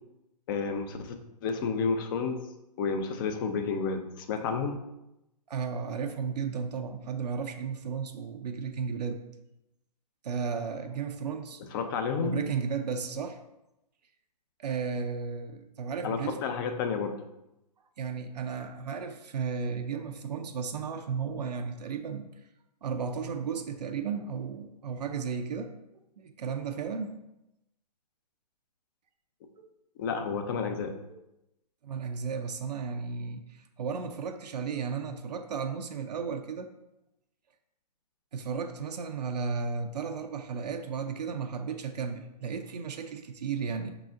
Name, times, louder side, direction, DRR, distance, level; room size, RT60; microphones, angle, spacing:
voice 1, 0.5-1.1 1.4-2.4 2.8-4.8 11.7-12.4 16.0-17.1 30.0-30.9, left 5 dB, 30° left, 6 dB, 0.5 m, -30 dB
voice 2, 5.5-9.2 10.2-11.6 12.2-13.4 14.6-16.4 18.0-22.3 22.8-27.2 29.6-29.7 31.8-36.7 38.3-43.9, right 6 dB, 75° right, 5 dB, 0.5 m, -34 dB
5.4 x 3.9 x 2.4 m, 0.91 s
hypercardioid pair, 135°, 21 cm